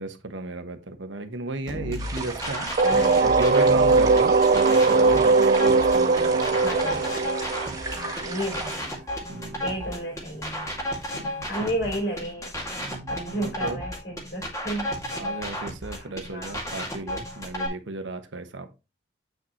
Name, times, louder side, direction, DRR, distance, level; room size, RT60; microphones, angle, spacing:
voice 1, 0.0-2.7 3.2-6.6 9.3-9.6 11.1-11.4 11.8-11.9 12.8-13.8 15.0-18.7, right 2 dB, 80° right, 1.2 m, -34 dB
sound 1, 1.7-17.7, equal, 15° left, 2.1 m, -33 dB
sound 2, 2.0-8.8, right 3 dB, 20° right, 1.8 m, -36 dB
voice 2, 2.8-3.4 6.6-7.1 7.9-8.9 9.6-10.7 11.5-12.5 13.1-14.9 15.9-16.8, right 1 dB, 65° left, 4.0 m, -32 dB
sound 3, 2.8-8.5, right 4 dB, 45° right, 0.3 m, -20 dB
8.0 x 6.6 x 3.0 m
head